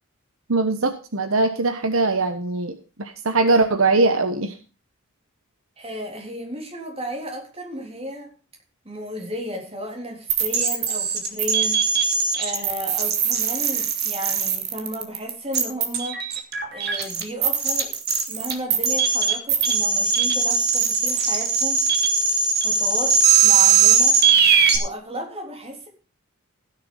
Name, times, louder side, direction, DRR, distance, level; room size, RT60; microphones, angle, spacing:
voice 1, 0.5-4.6, right 3 dB, 70° right, 1.1 m, -21 dB
voice 2, 5.8-8.3 8.9-16.2 16.7-17.9 18.3-21.9 22.6-24.2 24.7-25.9, equal, 25° right, 3.6 m, -34 dB
sound 1, 10.3-24.8, right 6 dB, 50° right, 2.0 m, -20 dB
16.0 x 6.7 x 5.5 m
head